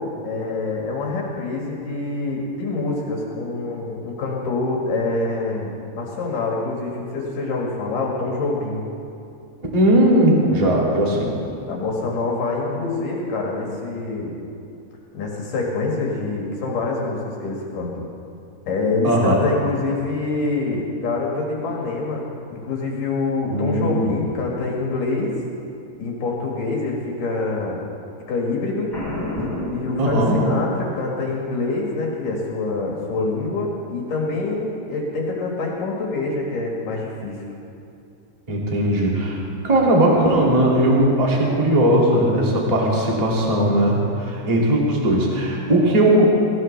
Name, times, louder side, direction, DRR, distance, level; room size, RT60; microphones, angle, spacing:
voice 1, 0.0-8.8 11.7-14.4 15.1-18.1 18.7-25.3 26.0-27.8 28.3-28.9 29.4-37.4, left 3 dB, 60° left, -2 dB, 2.9 m, -25 dB
voice 2, 9.7-11.3 19.0-19.4 23.5-24.1 30.0-30.4 38.5-39.4 39.6-46.2, right 1 dB, 20° right, -3 dB, 1.0 m, -18 dB
Boom, 28.9-30.8, left 1 dB, 5° left, 3.8 m, -30 dB
18.5 x 17.0 x 3.3 m, 2.7 s
omnidirectional pair, 4.8 m